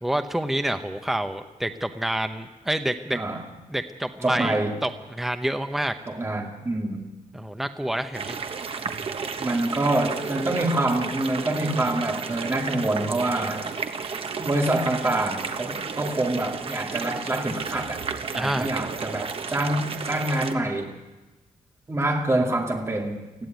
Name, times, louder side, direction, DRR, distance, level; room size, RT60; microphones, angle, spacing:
voice 1, 0.0-3.2 3.7-6.0 7.3-8.4 18.3-18.7, right 1 dB, ahead, 8 dB, 0.9 m, -28 dB
voice 2, 4.2-4.8 6.1-7.0 9.4-13.7 14.4-18.0 18.3-20.9 21.9-23.5, right 1 dB, 20° right, 2 dB, 2.6 m, -26 dB
sound 1, 8.1-20.5, right 5 dB, 40° right, 1.4 m, -32 dB
20.5 x 14.5 x 9.4 m, 1.1 s
wide cardioid pair, 155°, 14 cm